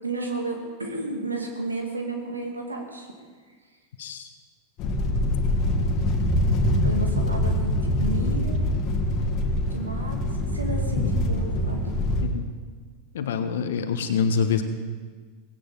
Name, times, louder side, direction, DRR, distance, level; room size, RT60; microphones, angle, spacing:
voice 1, 0.0-3.1 6.8-8.6 9.7-10.2 10.5-11.8, right 2 dB, 90° right, 3 dB, 1.9 m, -32 dB
sound 1, 4.8-12.2, left 1 dB, 45° left, 2.0 m, -24 dB
voice 2, 13.1-14.6, left 6 dB, 65° left, 8 dB, 1.3 m, -25 dB
17.5 x 16.5 x 4.1 m, 1.5 s
figure-of-eight pair, 90°, 0 cm